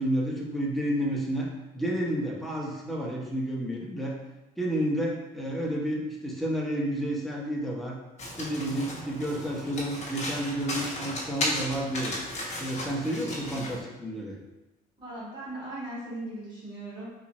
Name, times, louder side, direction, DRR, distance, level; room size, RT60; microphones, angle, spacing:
voice 1, 0.0-4.2 4.6-8.0 8.4-12.1 12.6-14.4, right 1 dB, ahead, -3 dB, 0.7 m, -30 dB
Domestic sounds home sounds, 8.2-13.8, left 1 dB, 40° left, 1.0 m, -35 dB
voice 2, 15.0-17.1, right 1 dB, 25° right, -8 dB, 1.5 m, -38 dB
3.9 x 2.4 x 3.0 m, 1.0 s
cardioid pair, 110°, 17 cm